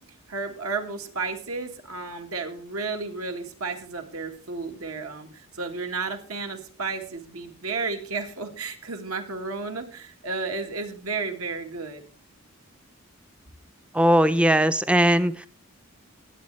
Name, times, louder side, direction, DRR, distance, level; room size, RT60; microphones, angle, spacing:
voice 1, 0.3-12.0, right 4 dB, 80° right, 4 dB, 1.7 m, -32 dB
voice 2, 13.9-15.5, equal, 5° right, 12 dB, 0.4 m, -19 dB
20.0 x 7.8 x 3.2 m, 0.41 s
head